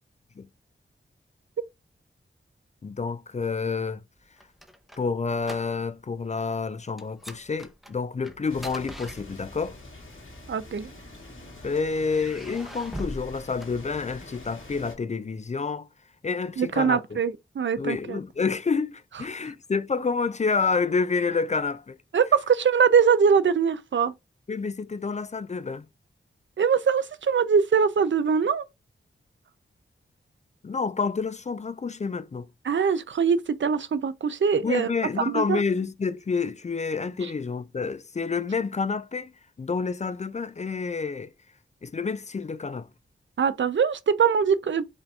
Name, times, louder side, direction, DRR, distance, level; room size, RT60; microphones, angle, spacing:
voice 1, 2.8-4.0 5.0-9.8 11.6-15.9 16.2-17.2 17.8-22.0 24.5-25.9 30.6-32.5 34.6-39.3 39.6-41.3 41.8-42.9, left 4 dB, 35° left, 0.4 m, -28 dB
sound 1, 4.2-6.1 6.3-6.6 7.0-9.8 10.6-11.5 12.1-14.4, equal, ahead, 0.8 m, -42 dB
sound 2, 8.5-14.9, left 1 dB, 75° left, 1.8 m, -45 dB
voice 2, 10.5-10.9 16.6-18.2 22.1-24.1 26.6-28.6 32.7-34.9 35.3-35.6 43.4-44.9, right 6 dB, 65° right, 0.5 m, -22 dB
5.0 x 2.6 x 3.4 m
wide cardioid pair, 70°, 21 cm